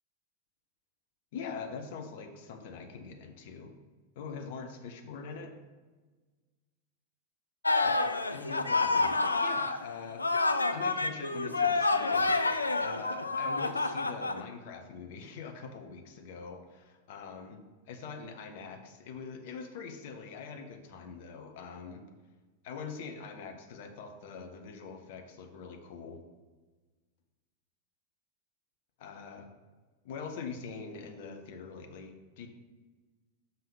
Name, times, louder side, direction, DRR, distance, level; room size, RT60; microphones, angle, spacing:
voice 1, 1.3-3.7 4.2-5.6 7.8-10.3 10.7-12.4 12.8-17.6 17.9-22.0 22.6-26.2 29.0-29.5 30.0-32.5, left 5 dB, 50° left, 4 dB, 0.9 m, -43 dB
sound 1, 7.6-9.8 10.2-14.4, left 3 dB, 80° left, 0.4 m, -28 dB
5.7 x 5.5 x 5.3 m, 1.3 s
figure-of-eight pair, 90°, 0 cm